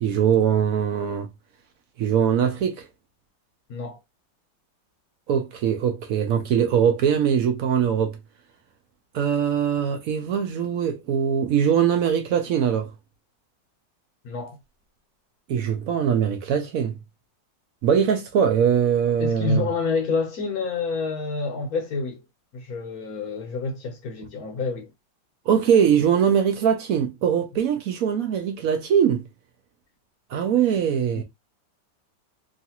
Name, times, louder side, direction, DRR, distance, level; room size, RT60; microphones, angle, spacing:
voice 1, 0.0-1.3 2.0-2.9 5.3-8.2 9.1-12.9 15.5-17.0 17.8-19.7 25.5-29.2 30.3-31.2, right 8 dB, 75° right, 0.8 m, -22 dB
voice 2, 3.7-4.0 14.2-14.6 19.2-22.2 22.5-24.9 31.1-31.2, left 4 dB, 65° left, 1.0 m, -28 dB
3.0 x 2.4 x 2.8 m
omnidirectional pair, 2.0 m